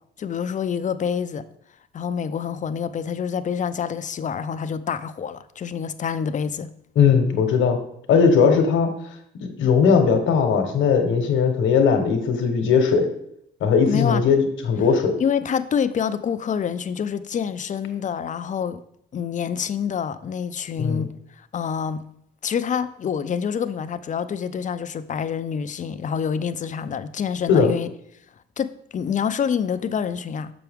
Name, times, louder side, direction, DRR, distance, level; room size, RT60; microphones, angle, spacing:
voice 1, 0.2-1.4 1.9-6.7 13.9-14.2 15.2-18.8 19.1-21.1 21.5-22.0 22.4-27.9 28.6-30.5, left 7 dB, 40° left, 0.5 m, -27 dB
voice 2, 7.0-7.8 8.1-8.9 9.6-13.1 13.6-15.2 20.8-21.1 27.5-27.7, left 6 dB, 75° left, 1.1 m, -18 dB
6.8 x 5.9 x 3.5 m
cardioid pair, 90°, 20 cm